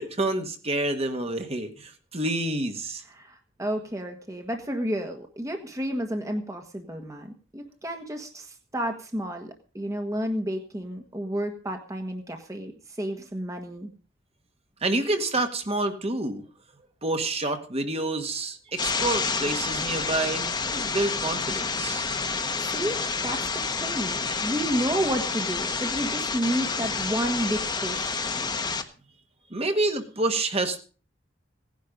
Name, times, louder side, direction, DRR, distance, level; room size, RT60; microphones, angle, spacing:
voice 1, 0.0-3.0 14.8-16.4 17.0-22.1 29.5-30.8, right 2 dB, 30° right, 6 dB, 1.7 m, -28 dB
voice 2, 3.1-13.9 22.6-23.0 23.2-28.2, equal, 15° right, 4 dB, 1.5 m, -31 dB
sound 1, 18.8-28.8, left 4 dB, 20° left, 1.3 m, -29 dB
17.0 x 10.5 x 5.2 m, 0.39 s
head